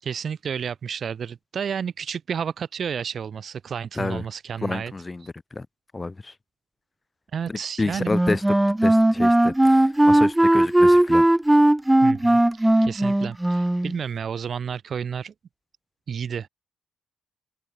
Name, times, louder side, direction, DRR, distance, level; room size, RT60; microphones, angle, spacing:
voice 1, 0.0-4.9 7.3-8.1 12.0-15.3 16.1-16.5, right 7 dB, 60° right, 5.9 m, -31 dB
voice 2, 4.6-5.3 5.5-5.7 5.9-6.3 7.5-8.4 8.8-11.2, left 3 dB, 25° left, 5.7 m, -29 dB
Wind instrument woodwind instrument, 8.1-14.0, right 1 dB, 10° right, 3.7 m, -18 dB
cardioid pair, 75°, 0 cm